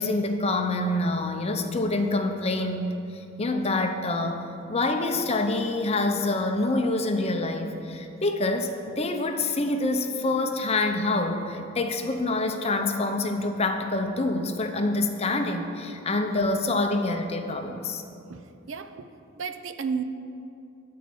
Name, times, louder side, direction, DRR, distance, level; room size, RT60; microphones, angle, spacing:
voice 1, 0.0-18.0, left 2 dB, 30° left, 5 dB, 0.6 m, -26 dB
voice 2, 18.3-19.1 19.4-20.0, right 6 dB, 65° right, 9 dB, 0.5 m, -33 dB
12.5 x 4.7 x 7.6 m, 2.7 s
head